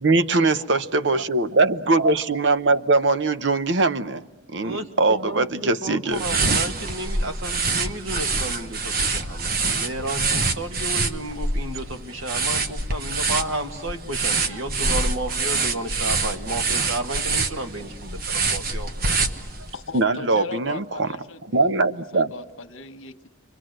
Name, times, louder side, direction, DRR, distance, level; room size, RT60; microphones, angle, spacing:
voice 1, 0.0-4.2 4.5-6.2 19.9-21.1 21.5-22.3, right 3 dB, 65° right, 0.8 m, -21 dB
voice 2, 1.1-1.5 1.9-2.2 4.6-19.2 19.6-19.7, right 1 dB, 90° right, 2.0 m, -32 dB
sound 1, 6.1-19.8, right 3 dB, 45° right, 1.2 m, -26 dB
voice 3, 19.7-21.7 22.1-23.3, left 4 dB, 90° left, 1.4 m, -37 dB
30.0 x 23.5 x 7.8 m
head